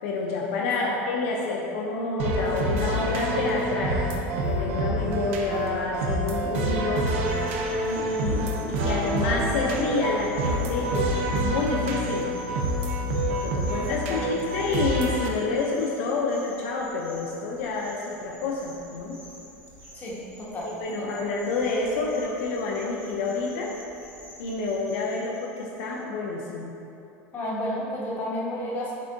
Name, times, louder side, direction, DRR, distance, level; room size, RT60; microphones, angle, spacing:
voice 1, 0.0-4.2 4.4-7.1 7.8-12.3 13.3-14.3 14.5-19.2 20.6-23.7 24.4-26.7, left 3 dB, 80° left, -2 dB, 0.4 m, -28 dB
sound 1, 2.2-15.3, right 1 dB, 80° right, 0.4 m, -27 dB
sound 2, 7.2-26.0, equal, 40° right, 1.0 m, -49 dB
voice 2, 13.9-14.3 19.9-21.2 27.3-28.9, left 1 dB, 30° left, -7 dB, 1.1 m, -32 dB
4.2 x 3.6 x 2.5 m, 2.8 s
supercardioid pair, 115°, 7 cm